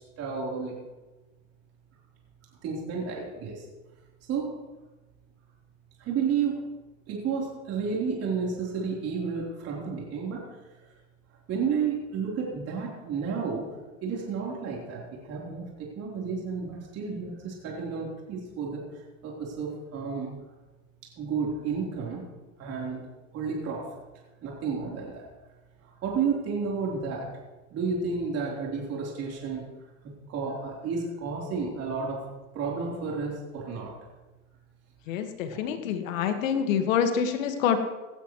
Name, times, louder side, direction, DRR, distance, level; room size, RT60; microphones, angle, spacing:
voice 1, 0.2-0.8 2.6-3.6 4.3-4.5 6.0-6.6 7.1-10.4 11.5-13.6 14.0-20.3 21.2-22.2 22.6-23.0 23.3-23.8 24.4-25.3 25.8-27.3 27.7-29.6 30.0-32.2 32.5-33.9, right 5 dB, 35° right, -3 dB, 3.8 m, -31 dB
voice 2, 35.1-37.8, left 8 dB, 70° left, 6 dB, 1.8 m, -26 dB
17.0 x 12.5 x 3.2 m, 1.2 s
supercardioid pair, 125°, 40 cm